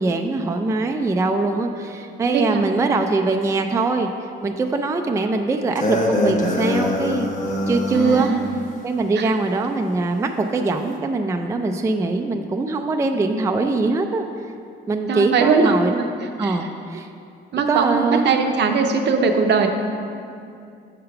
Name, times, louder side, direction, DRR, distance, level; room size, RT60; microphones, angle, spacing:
voice 1, 0.0-4.1 4.4-7.3 7.7-8.3 8.8-14.3 14.9-16.1 16.4-17.1 17.7-18.3, right 3 dB, 15° right, 5 dB, 0.3 m, -22 dB
voice 2, 2.3-2.7 7.9-8.4 9.2-9.3 15.1-16.1 16.4-16.6 17.5-19.7, right 4 dB, 60° right, 5 dB, 0.7 m, -20 dB
sound 1, 5.8-8.4, left 1 dB, 40° left, 0.9 m, -23 dB
6.5 x 3.9 x 5.6 m, 2.5 s
cardioid pair, 90°, 20 cm